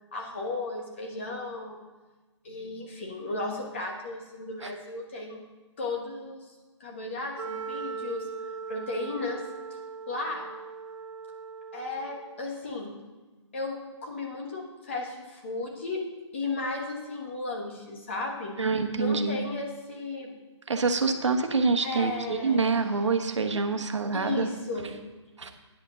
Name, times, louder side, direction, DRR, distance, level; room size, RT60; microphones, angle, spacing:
voice 1, 0.1-1.8 2.4-5.4 5.8-6.4 6.8-9.4 10.1-10.5 11.7-13.0 13.5-16.0 16.3-18.5 18.9-20.3 21.8-22.6 24.1-25.0, left 3 dB, 25° left, 0 dB, 1.3 m, -35 dB
Wind instrument woodwind instrument, 7.3-12.5, right 5 dB, 85° right, 0.5 m, -39 dB
voice 2, 18.6-19.4 20.7-24.5 25.4-25.5, right 4 dB, 65° right, 6 dB, 1.2 m, -26 dB
9.7 x 5.1 x 7.7 m, 1.2 s
hypercardioid pair, 175°, 16 cm